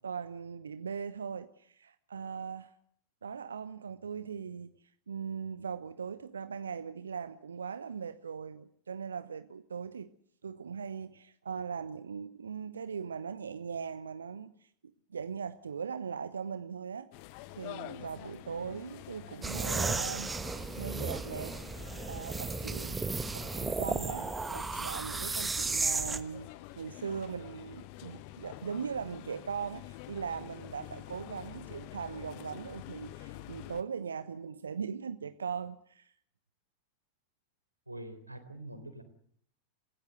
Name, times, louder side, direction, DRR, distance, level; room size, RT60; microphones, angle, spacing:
voice 1, 0.0-2.7 3.2-4.7 5.1-10.1 10.4-14.7 15.1-17.1 17.5-20.3 20.8-21.6 22.1-23.0 23.3-26.5 26.8-36.1, right 6 dB, 70° right, 0.9 m, -39 dB
sound 1, 17.1-33.8, left 16 dB, 45° left, 1.2 m, -48 dB
sound 2, 19.4-26.2, right 4 dB, 10° right, 1.2 m, -34 dB
voice 2, 37.9-39.0, right 1 dB, 85° right, 3.9 m, -44 dB
28.5 x 16.5 x 8.0 m
figure-of-eight pair, 90°, 0 cm